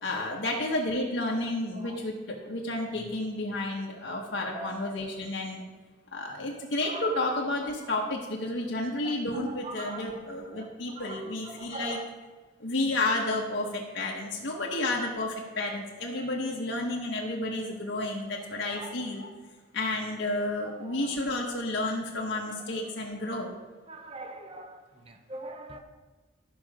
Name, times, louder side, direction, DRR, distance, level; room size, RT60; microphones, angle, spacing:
voice 1, 0.0-5.6 6.1-12.0 12.6-19.3 19.7-23.5, left 2 dB, 60° left, -2 dB, 1.2 m, -31 dB
voice 2, 6.6-7.0 9.0-9.1 9.5-10.0 10.6-10.7 11.0-11.2 11.5-12.0 18.7-18.9 23.9-24.8 25.1-25.8, right 2 dB, 30° right, 5 dB, 0.7 m, -41 dB
13.0 x 6.0 x 4.9 m, 1.3 s
head